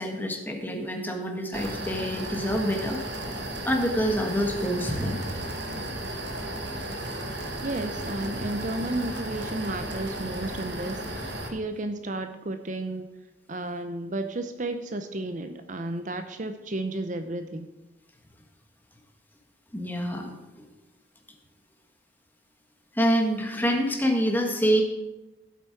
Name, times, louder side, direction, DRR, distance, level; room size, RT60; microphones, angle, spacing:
voice 1, 0.0-3.0 3.7-5.2 19.7-20.4 23.0-24.8, equal, 10° left, 2 dB, 1.7 m, -26 dB
sound 1, 1.5-11.5, right 1 dB, 75° right, 1.8 m, -34 dB
voice 2, 7.6-13.1 13.5-17.7, right 2 dB, 45° right, 8 dB, 0.7 m, -33 dB
15.5 x 8.2 x 4.7 m, 1.0 s
head